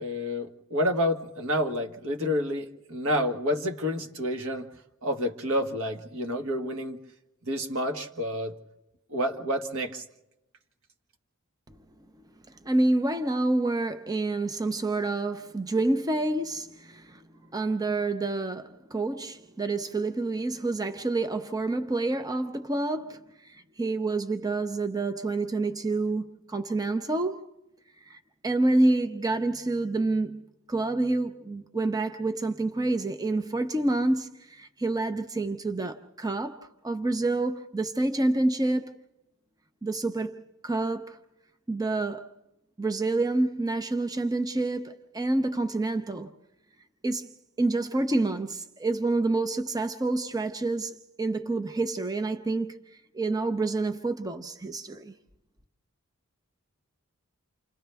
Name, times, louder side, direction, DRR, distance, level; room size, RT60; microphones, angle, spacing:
voice 1, 0.0-4.7 5.0-7.0 7.4-8.5 9.1-10.0, equal, 70° right, 1.7 m, -29 dB
voice 2, 12.6-17.2 17.5-27.4 28.1-36.6 36.8-38.9 39.8-40.4 40.6-41.2 41.7-42.3 42.8-46.3 47.0-47.3 47.6-52.8 53.1-55.1, right 2 dB, 20° right, 0.7 m, -28 dB
29.5 x 26.5 x 3.5 m
head